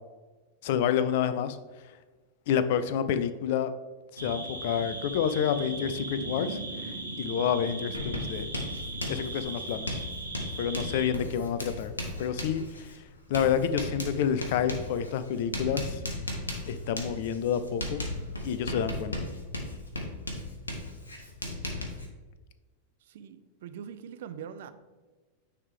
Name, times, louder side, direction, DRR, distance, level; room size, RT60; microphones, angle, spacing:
voice 1, 0.6-1.6 2.5-3.7 4.1-8.5 9.1-10.0 10.4-11.9 12.2-13.0 13.3-16.0 16.7-18.0 18.4-19.2, left 8 dB, 50° left, 0.4 m, -29 dB
sound 1, 4.2-11.1, right 2 dB, 80° right, 1.0 m, -38 dB
Writing, 7.9-22.1, left 1 dB, 75° left, 1.0 m, -37 dB
voice 2, 23.0-24.7, right 8 dB, 55° right, 0.4 m, -42 dB
9.3 x 3.4 x 3.5 m
figure-of-eight pair, 90°, 0 cm